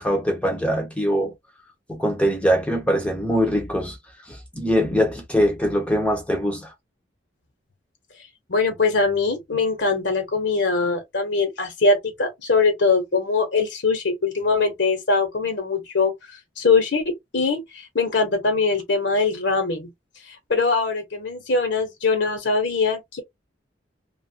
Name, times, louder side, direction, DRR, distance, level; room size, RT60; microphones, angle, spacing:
voice 1, 0.0-1.3 1.9-4.0 4.3-6.7, equal, 5° left, 0.6 m, -22 dB
voice 2, 8.5-16.1 16.6-19.9 20.5-23.2, left 4 dB, 75° left, 1.1 m, -22 dB
2.9 x 2.4 x 2.7 m
head